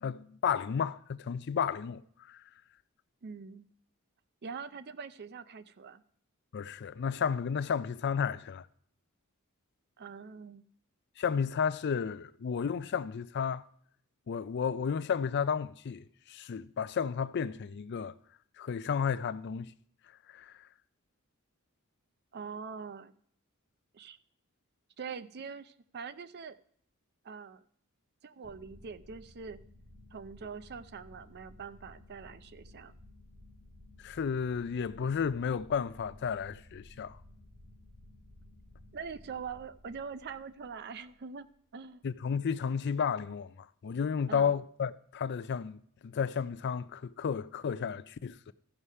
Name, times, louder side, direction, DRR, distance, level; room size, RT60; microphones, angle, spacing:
voice 1, 0.0-2.0 2.3-2.4 6.5-8.6 11.2-13.6 14.3-18.1 18.6-19.7 20.3-20.5 34.0-37.1 42.0-43.5 43.8-48.5, left 6 dB, 50° left, 0.4 m, -32 dB
voice 2, 3.2-3.7 4.4-6.0 10.0-10.6 22.3-23.1 23.9-24.2 25.0-26.6 27.2-27.6 28.2-29.6 30.1-32.9 38.9-41.5 41.7-42.1 44.3-44.5, right 5 dB, 50° right, 0.5 m, -43 dB
sound 1, 28.4-41.3, left 1 dB, 65° right, 4.7 m, -56 dB
14.0 x 4.9 x 5.5 m
head